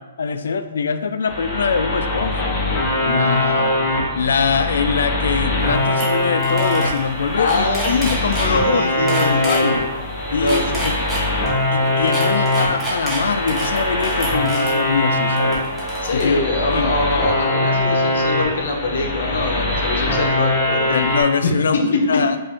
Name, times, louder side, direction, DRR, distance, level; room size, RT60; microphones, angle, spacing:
voice 1, 0.0-2.5 3.0-3.8 4.2-9.9 10.3-11.0 11.7-15.6 16.1-16.4 16.7-16.9 20.9-22.4, left 5 dB, 85° left, 10 dB, 0.3 m, -23 dB
sound 1, 1.3-21.2, left 1 dB, 20° left, 1.0 m, -22 dB
sound 2, 5.6-5.7 6.0-6.1 6.4-7.0 7.3-8.5 9.1-9.6 10.3-11.5 12.1-14.7 15.4-16.2, right 1 dB, 5° right, 1.0 m, -28 dB
voice 2, 7.4-9.8 10.4-10.8 16.0-20.9 21.4-22.2, left 2 dB, 70° left, 2 dB, 0.9 m, -23 dB
5.1 x 2.6 x 3.5 m, 1.1 s
hypercardioid pair, 165°, 0 cm